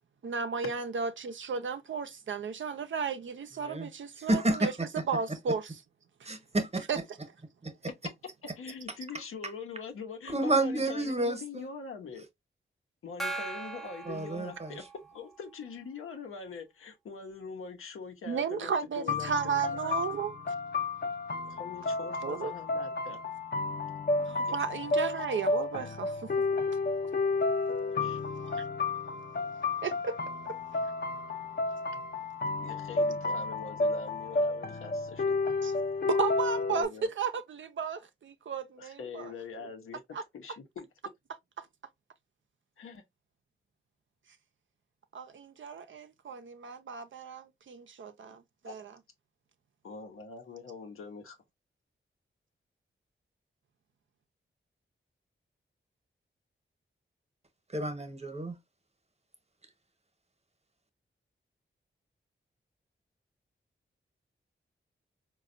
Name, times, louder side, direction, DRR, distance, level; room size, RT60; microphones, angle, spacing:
voice 1, 0.2-4.7 5.1-5.8 6.2-6.3 6.9-7.0 18.3-20.3 22.2-22.5 24.2-26.3 26.7-26.8 28.4-28.6 29.8-30.2 35.6-35.7 36.0-39.3 40.1-40.2 41.6-41.7 45.1-49.0, right 6 dB, 70° right, 0.6 m, -34 dB
voice 2, 4.2-5.0 6.2-6.9 7.6-7.7 10.3-11.7 14.0-14.8 57.7-58.6, right 2 dB, 30° right, 1.0 m, -30 dB
voice 3, 8.6-12.2 13.0-14.8 15.1-19.6 21.4-23.2 24.4-24.9 27.8-28.2 32.6-35.4 36.7-37.1 38.8-40.0 40.3-40.9 42.8-43.0 48.6-48.7 49.8-51.4, left 5 dB, 90° left, 0.8 m, -43 dB
Gong, 13.2-15.2, right 3 dB, ahead, 0.7 m, -39 dB
sound 1, 19.1-36.8, left 3 dB, 50° left, 0.6 m, -31 dB
4.1 x 2.3 x 2.4 m
cardioid pair, 45°, 21 cm